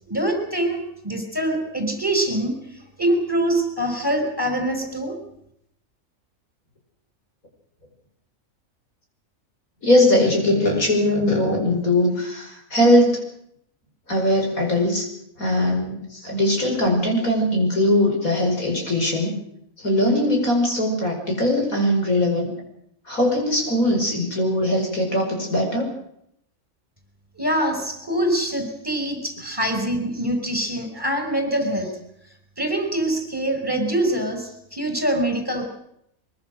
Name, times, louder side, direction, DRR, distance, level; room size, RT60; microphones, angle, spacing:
voice 1, 0.1-5.2 27.4-32.0 32.6-35.7, right 1 dB, 15° right, 5 dB, 5.2 m, -24 dB
voice 2, 9.8-13.2 14.1-15.1 15.4-19.3 19.8-22.5 23.1-25.9, left 1 dB, 85° left, 2 dB, 5.9 m, -20 dB
23.0 x 22.5 x 6.5 m, 0.73 s
omnidirectional pair, 1.4 m